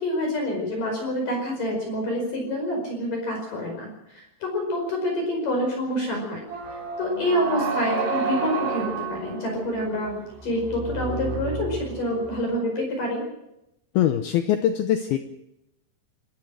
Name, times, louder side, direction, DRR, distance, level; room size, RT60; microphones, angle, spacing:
voice 1, 0.0-13.2, left 1 dB, 45° left, 1 dB, 6.4 m, -27 dB
sound 1, 6.5-12.5, right 4 dB, 75° right, 5.7 m, -31 dB
voice 2, 14.0-15.2, left 11 dB, 75° left, 8 dB, 2.4 m, -22 dB
27.5 x 15.0 x 6.4 m, 0.85 s
omnidirectional pair, 5.3 m